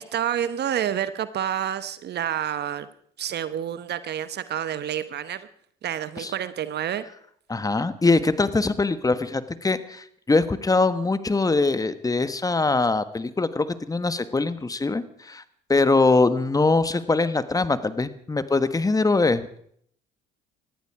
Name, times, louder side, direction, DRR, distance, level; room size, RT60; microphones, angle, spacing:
voice 1, 0.0-2.9 3.2-5.5 5.8-7.0, right 10 dB, 55° right, 14 dB, 1.0 m, -28 dB
voice 2, 7.5-15.4 15.7-19.5, left 3 dB, 15° left, 13 dB, 1.4 m, -22 dB
19.5 x 14.0 x 4.8 m, 0.64 s
supercardioid pair, 75°, 21 cm